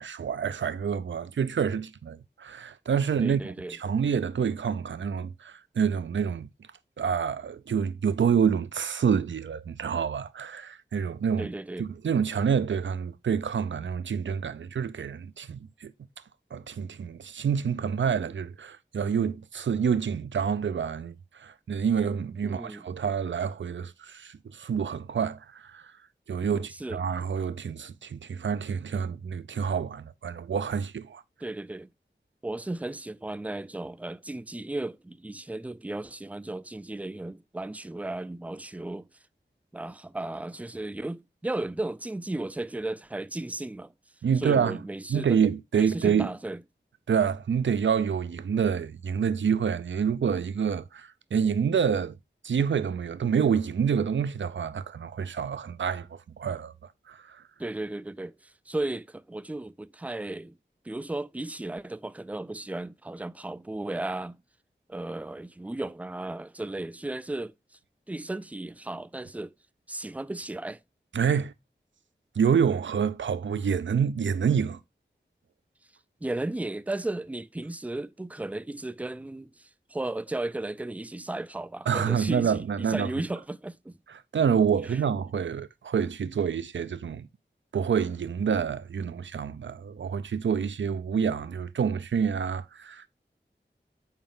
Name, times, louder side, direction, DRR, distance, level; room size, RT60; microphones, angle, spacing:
voice 1, 0.0-6.5 7.0-11.5 11.8-15.9 16.5-25.9 26.3-31.2 44.2-44.8 45.1-46.3 47.1-52.2 52.4-56.7 57.1-57.4 71.1-71.5 72.4-74.8 81.9-83.1 84.1-87.3 87.7-93.1, right 7 dB, 80° right, 0.4 m, -27 dB
voice 2, 3.2-3.8 11.4-11.9 22.4-22.9 26.5-27.0 31.4-31.9 32.4-39.1 39.7-43.9 44.4-45.4 45.8-46.6 57.6-60.6 60.8-64.4 64.9-67.5 68.1-69.5 69.9-70.8 76.2-84.0 84.8-85.0, right 2 dB, 10° right, 0.3 m, -35 dB
7.3 x 4.3 x 3.7 m
wide cardioid pair, 45°, 19 cm